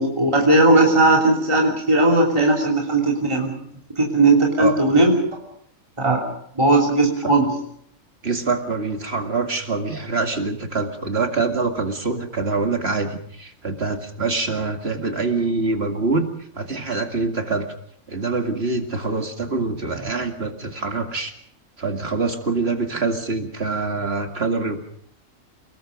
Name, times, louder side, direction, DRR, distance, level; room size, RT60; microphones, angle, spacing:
voice 1, 0.0-3.6 4.0-5.1 6.0-7.5, right 2 dB, 25° right, -1 dB, 3.1 m, -17 dB
voice 2, 8.2-16.3 16.5-17.7 18.1-21.3 21.8-24.8, right 3 dB, 50° right, 5 dB, 2.4 m, -25 dB
30.0 x 20.0 x 5.1 m, 0.68 s
omnidirectional pair, 1.3 m